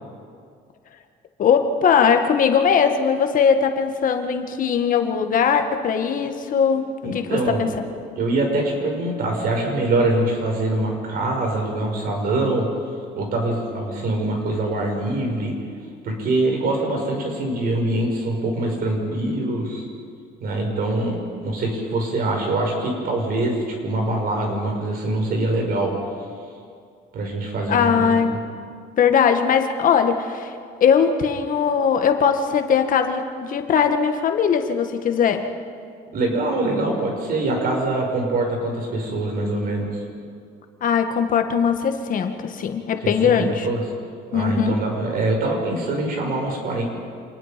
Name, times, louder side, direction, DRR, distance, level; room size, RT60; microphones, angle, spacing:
voice 1, 1.4-7.7 27.7-28.4 29.0-35.5 40.8-43.7 44.3-44.8, left 7 dB, 55° left, 6 dB, 1.7 m, -20 dB
voice 2, 7.0-7.6 8.1-12.7 13.1-15.5 16.0-19.8 20.4-25.9 27.1-28.1 36.1-40.0 43.2-43.3 43.6-43.8 44.3-46.8, right 2 dB, 60° right, 1 dB, 5.8 m, -24 dB
27.0 x 20.0 x 5.2 m, 2.3 s
cardioid pair, 110°, 17 cm